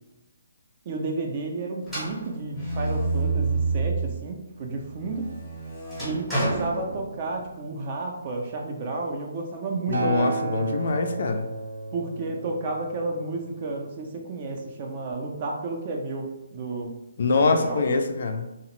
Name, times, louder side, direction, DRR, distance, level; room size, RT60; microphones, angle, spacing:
voice 1, 0.9-5.3 6.0-10.6 11.9-16.9 17.3-17.8, right 3 dB, 30° right, 2 dB, 0.4 m, -32 dB
sound 1, 1.8-4.3 4.7-7.5, right 3 dB, ahead, 0.7 m, -28 dB
voice 2, 9.9-11.5 17.2-18.5, left 3 dB, 50° left, 6 dB, 0.3 m, -24 dB
Acoustic guitar, 9.9-14.2 15.1-15.2, right 4 dB, 85° right, 0.6 m, -34 dB
2.8 x 2.0 x 3.0 m, 1.0 s
hypercardioid pair, 170°, 0 cm